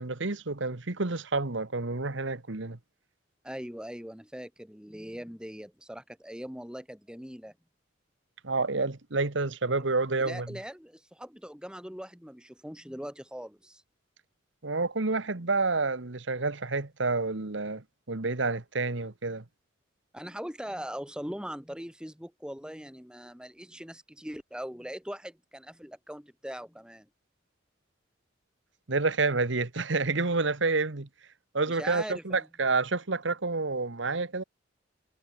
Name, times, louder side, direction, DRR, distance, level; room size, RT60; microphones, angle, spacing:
voice 1, 0.0-2.8 8.4-10.5 14.6-19.4 28.9-31.1 31.5-34.4, right 3 dB, 70° right, 1.4 m, -29 dB
voice 2, 3.4-7.5 10.2-13.8 20.1-27.1 31.7-32.5, equal, 5° right, 2.1 m, -41 dB
head